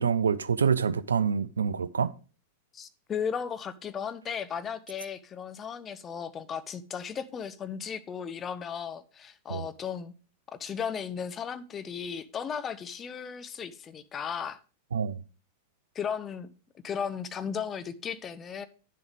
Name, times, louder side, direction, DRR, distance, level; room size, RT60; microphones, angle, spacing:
voice 1, 0.0-2.1 9.5-9.6 14.9-15.2, right 6 dB, 70° right, 0.4 m, -26 dB
voice 2, 2.7-10.1 10.6-14.6 15.9-16.5 16.8-18.7, left 7 dB, 25° left, 0.7 m, -35 dB
9.8 x 7.1 x 3.4 m
figure-of-eight pair, 90°, 0 cm